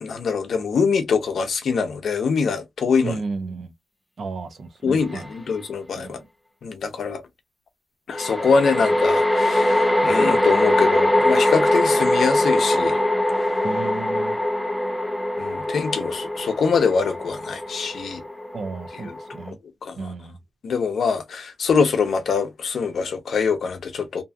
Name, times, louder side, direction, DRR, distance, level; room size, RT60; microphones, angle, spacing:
voice 1, 0.0-3.1 4.8-6.2 6.6-7.2 8.1-13.0 15.4-18.2 19.8-20.1 20.6-24.2, left 5 dB, 65° left, 0.6 m, -23 dB
voice 2, 3.0-3.7 4.2-5.3 6.0-6.3 13.6-14.4 18.5-19.6 20.0-20.4, right 4 dB, 50° right, 0.6 m, -33 dB
sound 1, 5.1-5.3 8.1-19.5, left 1 dB, 5° left, 0.4 m, -22 dB
2.6 x 2.3 x 2.5 m
wide cardioid pair, 165°, 0 cm